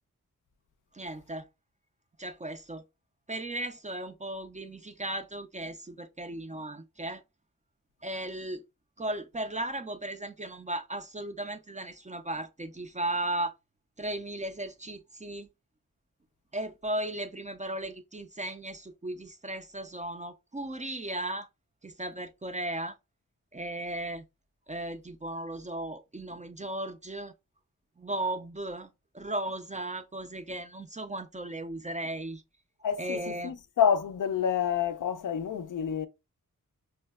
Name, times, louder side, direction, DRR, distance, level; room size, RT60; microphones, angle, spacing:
voice 1, 0.9-1.5 2.2-2.8 3.3-7.2 8.0-8.6 9.0-13.5 14.0-15.5 16.5-21.5 21.8-23.0 23.5-24.2 24.7-27.3 28.0-32.4 33.0-33.5, right 1 dB, 20° right, 0.4 m, -36 dB
voice 2, 32.8-36.1, left 8 dB, 60° left, 0.5 m, -28 dB
5.3 x 2.1 x 2.2 m
wide cardioid pair, 70°, 35 cm